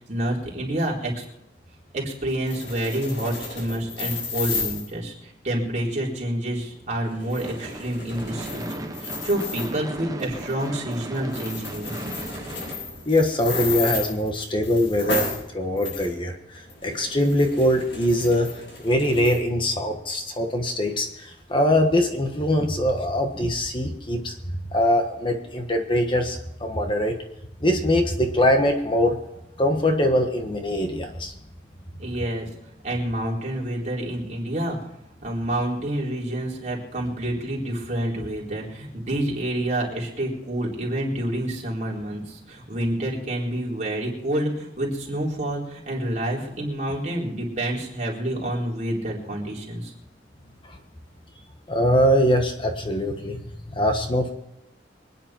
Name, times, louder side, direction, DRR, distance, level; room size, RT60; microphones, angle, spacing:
voice 1, 0.1-1.3 1.9-12.0 32.0-32.5 32.8-34.9 35.2-49.9, right 1 dB, 40° right, -3 dB, 4.2 m, -28 dB
sound 1, 2.3-4.9 7.0-9.8 10.2-10.7 10.9-11.0 11.3-15.4 15.8-16.1 16.5-19.4, left 4 dB, 75° left, 7.9 m, -33 dB
Gunshot gunfire / Fireworks, 7.4-13.7, right 1 dB, 20° right, 1.1 m, -36 dB
voice 2, 13.1-15.3 15.5-18.5 18.8-24.3 24.7-27.2 27.6-29.2 29.6-31.3 51.7-53.4 53.7-54.3, equal, 25° left, 4 dB, 1.4 m, -22 dB
25.0 x 10.0 x 4.5 m, 0.84 s
head